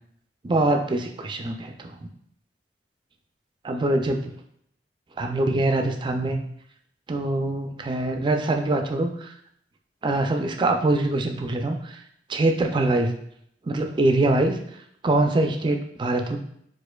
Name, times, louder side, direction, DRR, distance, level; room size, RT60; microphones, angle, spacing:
voice 1, 0.4-1.9 3.6-4.3 5.2-6.4 7.1-9.3 10.0-12.0 12.3-13.1 13.6-14.6 15.0-16.4, right 2 dB, 25° right, 4 dB, 0.3 m, -23 dB
4.3 x 2.4 x 2.2 m, 0.69 s
head